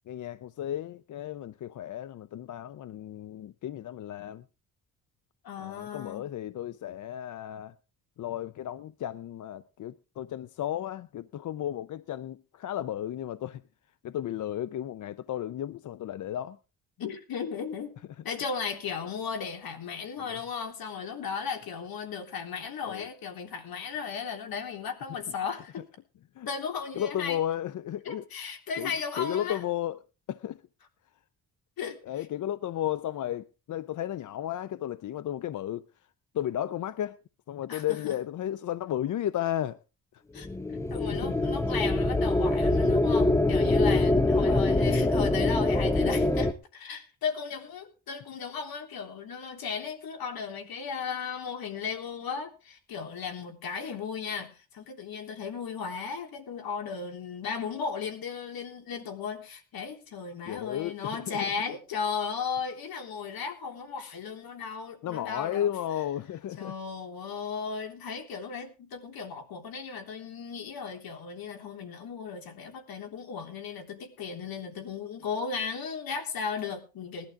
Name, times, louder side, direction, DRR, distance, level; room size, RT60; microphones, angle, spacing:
voice 1, 0.1-4.4 5.6-7.7 8.2-13.6 14.0-16.6 22.9-23.1 26.4-26.5 26.9-28.2 28.8-28.9 29.2-30.0 30.3-30.6 32.1-35.9 36.3-37.2 37.5-39.8 40.9-41.4 44.4-44.6 60.5-61.5 65.0-66.7, left 11 dB, 55° left, 0.6 m, -34 dB
voice 2, 5.4-6.3 17.0-17.9 18.2-25.8 26.5-27.4 28.0-29.6 31.8-32.3 37.7-38.2 40.3-40.5 40.9-65.7 66.6-77.3, left 6 dB, 70° left, 3.5 m, -36 dB
sound 1, 40.4-46.5, left 2 dB, 10° left, 0.6 m, -24 dB
19.5 x 11.5 x 3.5 m
cardioid pair, 130°, 37 cm